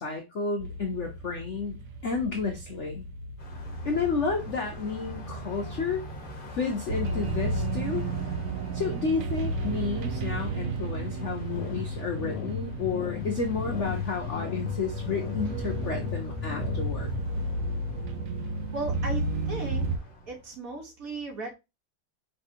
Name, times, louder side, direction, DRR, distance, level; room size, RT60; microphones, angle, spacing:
voice 1, 0.0-1.8 2.0-3.0 3.8-6.0 6.5-8.1 8.7-17.1, left 4 dB, 60° left, 0.7 m, -31 dB
sound 1, 0.6-20.0, right 3 dB, 75° right, 0.7 m, -33 dB
Car passing by, 3.4-20.6, equal, 35° left, 1.0 m, -46 dB
sound 2, 11.5-17.2, left 13 dB, 80° left, 1.4 m, -35 dB
voice 2, 18.7-19.8 20.3-21.5, right 2 dB, 50° right, 1.3 m, -36 dB
5.3 x 3.4 x 2.7 m
omnidirectional pair, 2.2 m